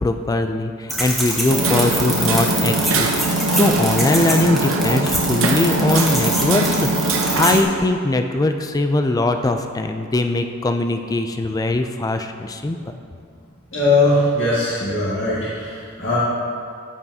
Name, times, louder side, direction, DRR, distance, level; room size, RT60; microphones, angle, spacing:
voice 1, 0.0-12.8, left 2 dB, 15° left, 6 dB, 0.3 m, -21 dB
sound 1, 0.9-7.6, right 1 dB, ahead, 1.1 m, -25 dB
Hammer, 1.5-7.6, right 2 dB, 70° right, 0.7 m, -21 dB
voice 2, 13.7-16.2, left 2 dB, 60° left, -12 dB, 1.9 m, -20 dB
13.5 x 5.7 x 2.7 m, 2.3 s
head